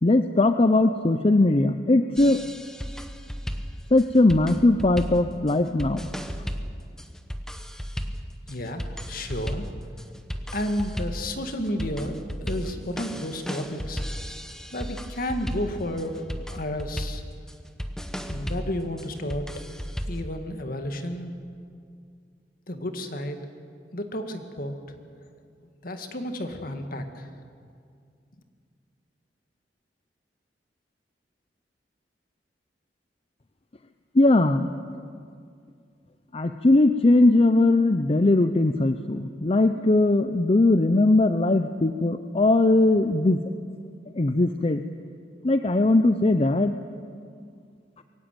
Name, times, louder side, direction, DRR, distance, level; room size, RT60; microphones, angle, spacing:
voice 1, 0.0-2.4 3.9-6.1 34.2-34.7 36.3-43.4 44.2-44.8 45.4-46.8, left 2 dB, 35° left, 9 dB, 0.6 m, -20 dB
sound 1, 2.2-20.3, equal, 5° left, 1.0 m, -35 dB
voice 2, 8.5-9.7 10.5-14.0 14.7-16.2 16.5-17.2 18.3-19.5 20.1-21.3 22.7-23.4 23.9-24.8 25.8-27.3, left 1 dB, 55° left, 6 dB, 1.9 m, -31 dB
22.5 x 16.0 x 9.2 m, 2.3 s
head